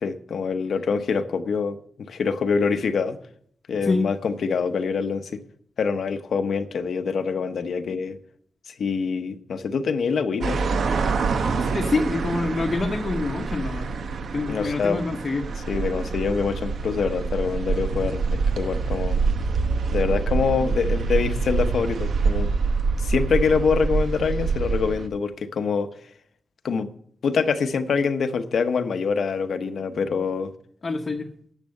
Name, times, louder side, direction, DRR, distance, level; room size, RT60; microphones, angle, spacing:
voice 1, 0.0-3.2 3.7-5.4 5.8-8.2 8.7-10.6 14.5-15.0 15.7-19.2 19.9-22.5 23.0-25.9 26.6-26.9 27.2-30.5, left 5 dB, 70° left, 9 dB, 0.8 m, -25 dB
sound 1, 10.4-25.1, right 4 dB, 75° right, 0.9 m, -26 dB
voice 2, 11.6-13.9 14.3-15.5 30.8-31.3, left 3 dB, 35° left, 2 dB, 0.9 m, -26 dB
10.5 x 7.5 x 6.5 m, 0.64 s
wide cardioid pair, 170°, 0 cm